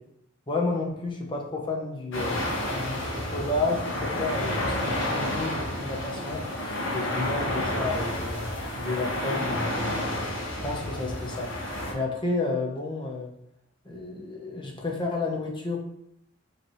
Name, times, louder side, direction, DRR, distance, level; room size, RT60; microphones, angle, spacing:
voice 1, 0.5-2.4 2.7-6.4 6.9-8.4 8.8-10.2 10.6-11.5 11.9-13.3 13.8-15.8, left 2 dB, 25° left, -1 dB, 0.8 m, -31 dB
sound 1, 2.1-11.9, left 1 dB, 65° left, 1.2 m, -30 dB
4.9 x 3.1 x 3.1 m, 0.76 s
head